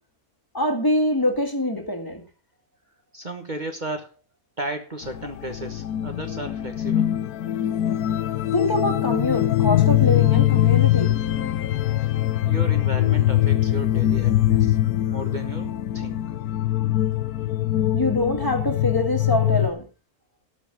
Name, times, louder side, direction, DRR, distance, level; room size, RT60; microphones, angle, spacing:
voice 1, 0.5-2.2 8.5-11.1 17.9-19.9, left 1 dB, 15° left, 2.1 m, -24 dB
voice 2, 3.1-4.1 4.6-7.1 12.4-14.8 15.1-16.2, right 1 dB, 30° right, 1.4 m, -34 dB
sound 1, 5.1-19.7, left 13 dB, 90° left, 1.2 m, -22 dB
12.5 x 5.8 x 7.1 m
omnidirectional pair, 1.5 m